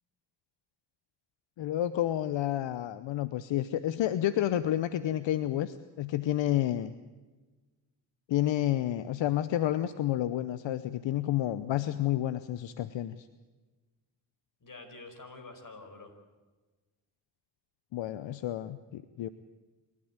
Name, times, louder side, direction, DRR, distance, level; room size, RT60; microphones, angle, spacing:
voice 1, 1.6-6.9 8.3-13.3 17.9-19.3, left 12 dB, 75° left, 14 dB, 0.8 m, -30 dB
voice 2, 14.6-16.1 19.2-19.3, left 3 dB, 45° left, 6 dB, 5.2 m, -47 dB
26.5 x 12.5 x 8.9 m, 1.3 s
supercardioid pair, 55°, 45 cm